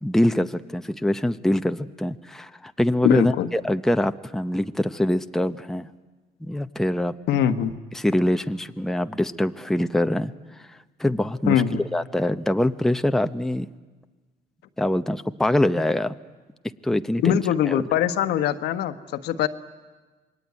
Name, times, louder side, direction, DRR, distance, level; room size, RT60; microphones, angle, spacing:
voice 1, 0.0-5.9 6.4-7.1 7.9-10.3 11.0-11.6 11.9-13.7 14.8-16.1 16.8-17.4 17.7-17.8, left 1 dB, ahead, 9 dB, 0.8 m, -24 dB
voice 2, 3.0-3.5 7.3-7.7 11.5-11.8 17.2-19.5, left 10 dB, 75° left, 9 dB, 1.3 m, -22 dB
27.0 x 21.5 x 9.6 m, 1.3 s
cardioid pair, 110°, 17 cm